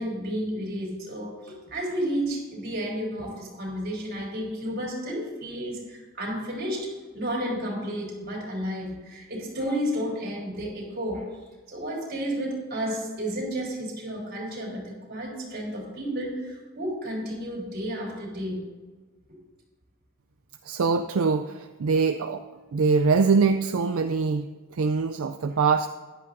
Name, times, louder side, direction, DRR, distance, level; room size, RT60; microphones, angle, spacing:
voice 1, 0.0-6.9 7.1-11.3 11.7-18.7, equal, 50° right, -2 dB, 3.8 m, -32 dB
voice 2, 20.6-22.4 22.7-25.9, right 4 dB, 70° right, 8 dB, 0.4 m, -23 dB
14.5 x 11.0 x 2.6 m, 1.3 s
head